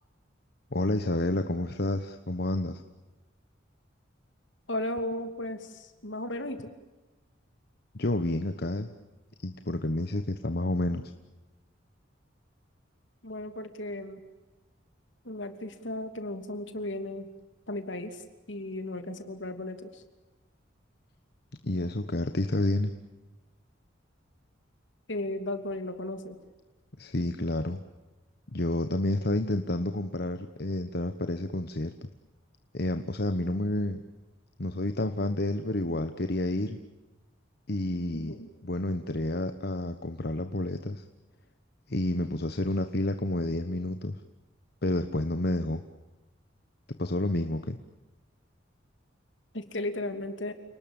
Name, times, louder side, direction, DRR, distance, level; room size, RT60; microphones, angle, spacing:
voice 1, 0.7-2.8 7.9-8.9 9.4-11.1 21.6-22.9 27.0-27.8 28.5-31.9 32.7-34.0 34.6-36.8 37.7-38.4 38.6-41.0 41.9-44.2 44.8-45.8 47.0-47.8, left 1 dB, 55° left, 9 dB, 1.2 m, -29 dB
voice 2, 4.7-6.7 13.2-14.2 15.2-17.3 17.7-20.0 25.1-26.4 38.1-38.5 49.5-50.5, left 1 dB, 70° left, 8 dB, 2.9 m, -35 dB
29.0 x 19.5 x 8.9 m, 1.1 s
head